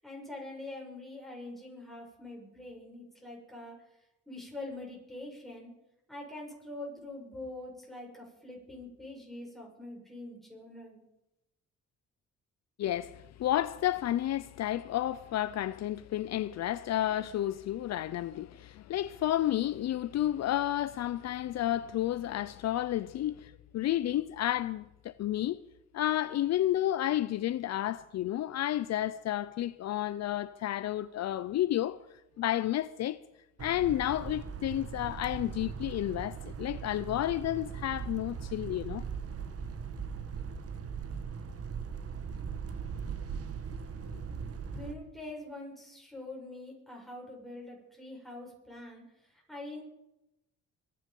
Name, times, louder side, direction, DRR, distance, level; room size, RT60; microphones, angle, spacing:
voice 1, 0.0-3.9 4.3-5.7 6.1-11.0 44.7-49.8, left 2 dB, ahead, 7.4 m, -44 dB
voice 2, 12.8-25.6 25.9-32.0 32.4-33.2 33.6-39.1, left 13 dB, 60° left, 0.5 m, -31 dB
sound 1, 33.6-44.9, right 6 dB, 50° right, 1.5 m, -39 dB
23.0 x 10.0 x 5.4 m
cardioid pair, 90°, 30 cm